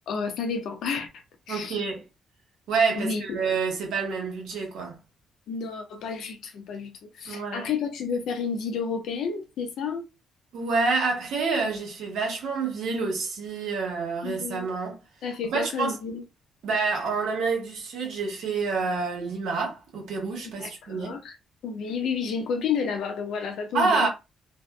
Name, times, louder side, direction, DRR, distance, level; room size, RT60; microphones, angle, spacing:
voice 1, 0.1-1.8 3.0-3.4 5.5-10.0 14.2-14.7 15.2-16.2 20.4-21.4 21.6-24.1, left 5 dB, 75° left, 0.6 m, -31 dB
voice 2, 1.5-2.0 2.7-5.0 7.3-7.7 10.5-15.0 15.4-16.0 16.6-21.2 23.7-24.1, right 4 dB, 80° right, 1.0 m, -28 dB
2.6 x 2.1 x 2.2 m
cardioid pair, 90°, 0 cm